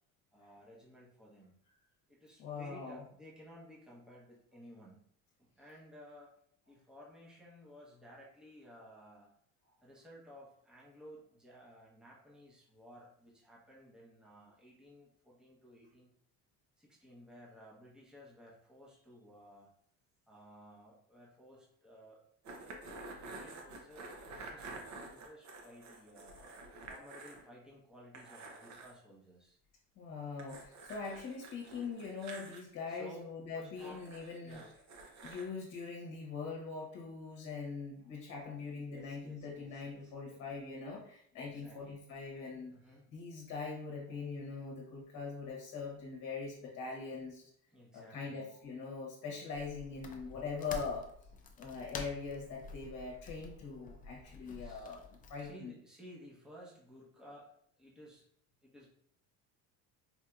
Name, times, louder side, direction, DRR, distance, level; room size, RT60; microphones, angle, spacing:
voice 1, 0.3-1.5 2.1-5.0 5.4-6.3 6.7-9.3 9.8-16.1 16.8-19.7 20.3-22.3 22.9-26.4 26.9-29.6 32.9-33.2 33.5-34.7 38.8-40.4 41.4-42.0 42.7-43.1 47.7-48.5 50.2-50.5 54.3-54.9 55.4-58.3 58.6-58.9, equal, ahead, -4 dB, 0.8 m, -56 dB
voice 2, 2.4-3.0 30.0-34.6 35.2-42.7 43.1-47.5 47.9-51.1 51.6-55.0 55.3-55.7, left 4 dB, 55° left, -2 dB, 1.0 m, -42 dB
sound 1, 22.5-27.4 27.7-27.8 28.1-29.0 30.4-32.6 33.8-35.5, right 3 dB, 50° right, 0.8 m, -49 dB
sound 2, 49.5-55.5, left 4 dB, 25° left, 0.4 m, -49 dB
4.3 x 2.7 x 2.3 m, 0.67 s
cardioid pair, 125°, 37 cm